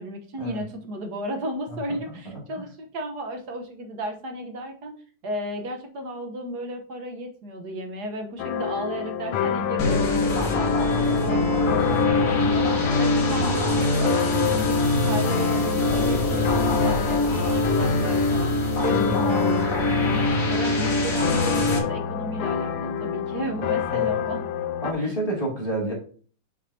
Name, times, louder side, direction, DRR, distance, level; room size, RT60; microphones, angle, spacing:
voice 1, 0.0-5.0 5.2-20.2 20.5-24.5 25.0-25.1, right 1 dB, 60° right, 4 dB, 1.5 m, -34 dB
voice 2, 1.7-2.2 2.6-2.7 23.9-24.1 24.8-25.9, right 1 dB, 20° left, -4 dB, 2.3 m, -30 dB
sound 1, 8.4-24.9, left 9 dB, 75° left, 1.2 m, -28 dB
sound 2, 9.8-21.8, left 2 dB, 45° left, 1.8 m, -23 dB
6.6 x 5.9 x 2.7 m, 0.42 s
omnidirectional pair, 2.2 m